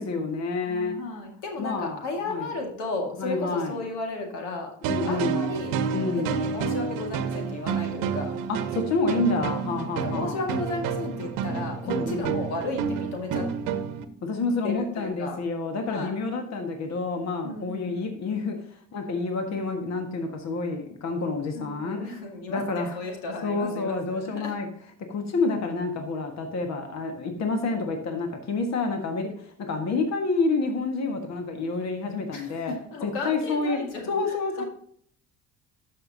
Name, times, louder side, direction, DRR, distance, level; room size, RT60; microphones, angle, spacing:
voice 1, 0.0-1.0 1.6-2.0 2.3-2.5 3.1-3.8 4.9-5.5 5.9-6.4 8.5-10.4 11.8-12.4 14.2-18.5 18.9-22.1 22.5-23.0 23.4-24.7 25.1-32.7 33.0-33.8 34.1-34.6, left 3 dB, 50° left, 4 dB, 1.5 m, -28 dB
voice 2, 0.7-4.7 5.0-5.8 6.2-8.3 10.0-13.5 14.6-15.4 15.9-16.1 17.4-18.0 21.5-24.6 32.3-34.7, left 2 dB, 85° left, 2 dB, 2.0 m, -34 dB
sound 1, 4.8-14.1, right 6 dB, 70° right, 0.9 m, -29 dB
12.5 x 5.8 x 2.7 m, 0.62 s
hypercardioid pair, 70°, 34 cm